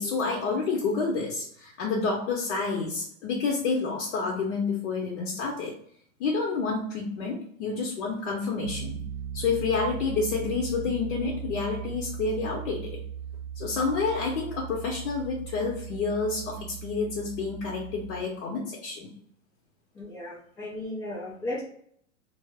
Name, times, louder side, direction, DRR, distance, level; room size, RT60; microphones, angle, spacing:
voice 1, 0.0-5.7 6.2-9.0 9.3-13.0 13.6-19.1, left 4 dB, 60° left, -1 dB, 0.7 m, -29 dB
Piano, 8.6-18.2, right 9 dB, 60° right, 0.7 m, -38 dB
voice 2, 20.0-21.6, left 1 dB, 10° left, -6 dB, 0.3 m, -35 dB
2.0 x 2.0 x 3.3 m, 0.65 s
hypercardioid pair, 125°, 41 cm